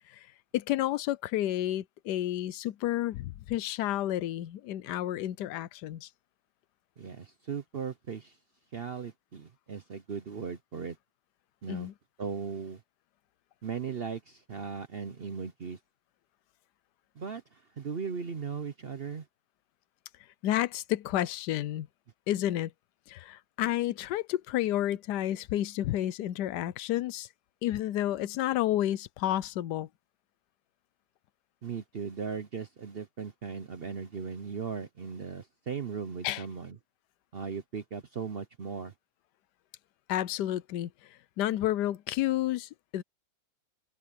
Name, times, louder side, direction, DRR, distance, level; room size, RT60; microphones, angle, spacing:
voice 1, 0.5-6.1 11.7-11.9 20.4-21.9 22.3-22.7 23.1-27.3 27.6-29.9 36.2-36.4 40.1-40.9 41.4-43.0, left 13 dB, 70° left, 1.1 m, -30 dB
voice 2, 7.0-8.4 8.7-11.0 11.6-11.9 12.2-12.8 13.6-15.8 17.1-19.3 31.6-36.8 37.3-38.9, right 6 dB, 60° right, 0.6 m, -38 dB
open air
omnidirectional pair, 2.1 m